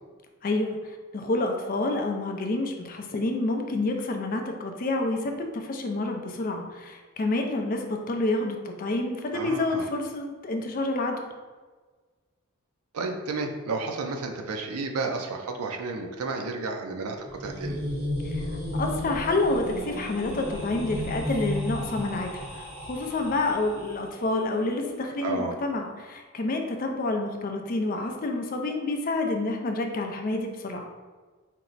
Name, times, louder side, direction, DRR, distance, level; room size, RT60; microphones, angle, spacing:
voice 1, 0.4-11.2 18.2-30.9, left 2 dB, 40° left, 3 dB, 0.4 m, -28 dB
voice 2, 9.3-9.8 12.9-17.8 25.2-25.6, right 3 dB, 80° right, 3 dB, 0.4 m, -32 dB
sound 1, 17.1-24.1, left 1 dB, 30° right, 1.0 m, -33 dB
4.3 x 2.0 x 3.9 m, 1.4 s
head